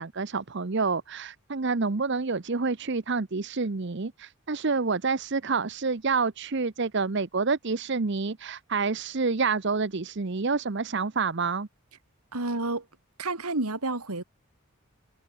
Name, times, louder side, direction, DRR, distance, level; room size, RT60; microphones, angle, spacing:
voice 1, 0.0-11.7, right 4 dB, 50° right, 0.8 m, -28 dB
voice 2, 12.3-12.9 13.2-14.2, right 2 dB, 90° right, 3.0 m, -30 dB
head